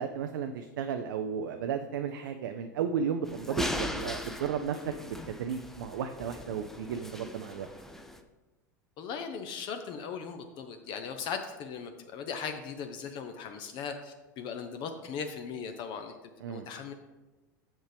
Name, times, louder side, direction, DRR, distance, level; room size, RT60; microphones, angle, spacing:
voice 1, 0.0-7.7 16.4-16.7, right 7 dB, 75° right, 6 dB, 0.5 m, -34 dB
sound 1, 3.3-8.2, left 1 dB, 5° left, 0.6 m, -39 dB
voice 2, 9.0-16.1 16.4-16.9, left 6 dB, 50° left, 6 dB, 0.7 m, -38 dB
7.3 x 6.4 x 3.4 m, 1.1 s
hypercardioid pair, 90°, 11 cm